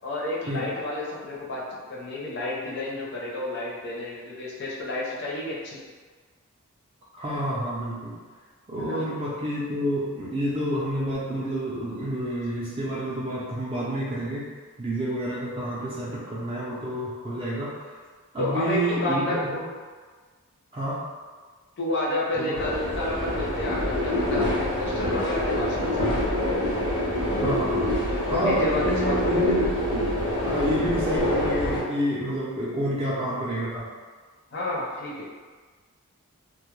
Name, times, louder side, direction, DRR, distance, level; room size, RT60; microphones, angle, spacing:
voice 1, 0.0-1.6 1.9-5.8 8.8-9.1 18.4-19.4 21.8-26.2 28.2-29.4 34.5-35.3, left 2 dB, 50° left, -5 dB, 0.6 m, -30 dB
voice 2, 7.1-8.1 8.7-14.5 14.8-17.8 18.3-19.6 20.7-21.0 22.4-22.6 27.3-27.8 28.3-30.0 30.4-33.9, equal, 25° right, -7 dB, 0.5 m, -29 dB
sound 1, 22.5-31.8, left 1 dB, 85° left, 0.8 m, -26 dB
2.2 x 2.0 x 3.0 m, 1.5 s
head